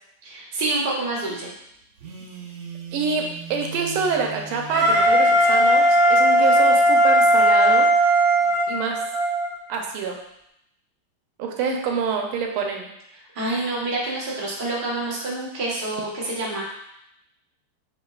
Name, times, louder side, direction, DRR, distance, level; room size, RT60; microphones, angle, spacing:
voice 1, 0.2-1.5 13.3-16.6, right 2 dB, 30° right, -6 dB, 1.0 m, -27 dB
Telephone, 2.0-5.1, right 4 dB, 65° right, 0.9 m, -38 dB
voice 2, 2.9-7.9 8.7-9.0 9.7-10.2 11.4-12.9, right 5 dB, 90° right, 2 dB, 1.6 m, -26 dB
Wind instrument woodwind instrument, 4.7-9.5, right 1 dB, 50° right, 1.8 m, -17 dB
7.4 x 2.8 x 2.4 m, 0.77 s
omnidirectional pair, 2.3 m